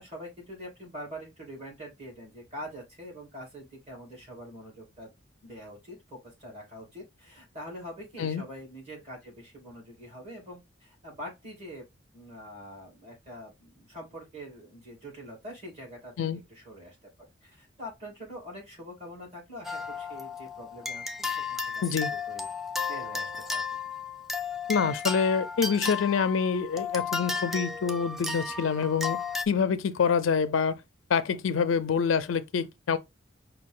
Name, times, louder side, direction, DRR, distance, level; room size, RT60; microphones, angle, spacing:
voice 1, 0.0-5.1 5.4-11.9 12.1-17.0 17.4-22.5 22.9-23.6, equal, 35° right, 2.8 m, -44 dB
sound 1, 19.6-29.5, left 4 dB, ahead, 0.3 m, -34 dB
voice 2, 24.7-29.2 29.5-30.8 31.1-33.0, left 6 dB, 80° left, 0.4 m, -26 dB
5.2 x 2.3 x 3.7 m
head